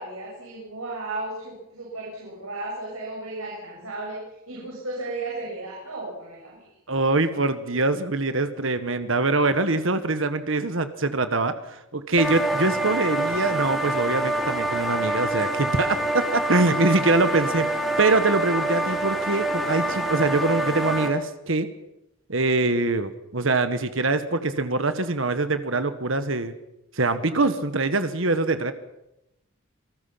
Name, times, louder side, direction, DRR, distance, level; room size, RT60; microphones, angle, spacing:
voice 1, 0.0-4.2 4.5-6.6, right 2 dB, 85° right, -3 dB, 7.3 m, -34 dB
voice 2, 6.9-17.7 18.0-21.7 22.3-26.5 27.0-28.7, right 3 dB, 65° right, 10 dB, 1.4 m, -23 dB
sound 1, 12.2-21.1, right 1 dB, ahead, 3.4 m, -26 dB
27.5 x 19.5 x 5.8 m, 0.88 s
head